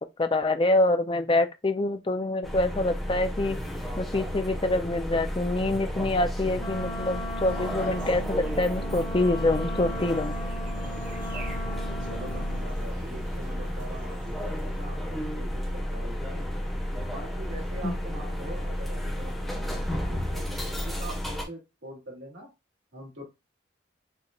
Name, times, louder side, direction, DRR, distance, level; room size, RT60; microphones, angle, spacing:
voice 1, 0.2-3.6 4.0-10.4 17.8-17.9, left 2 dB, 25° left, 0.4 m, -26 dB
sound 1, 2.4-21.4, equal, ahead, 1.3 m, -32 dB
Wind instrument woodwind instrument, 6.6-12.7, left 1 dB, 65° left, 2.3 m, -38 dB
sound 2, 7.4-14.8, right 2 dB, 45° right, 0.9 m, -46 dB
voice 2, 11.6-16.5 16.9-22.5 22.9-23.2, right 1 dB, 70° right, 2.6 m, -44 dB
6.7 x 3.1 x 2.4 m
head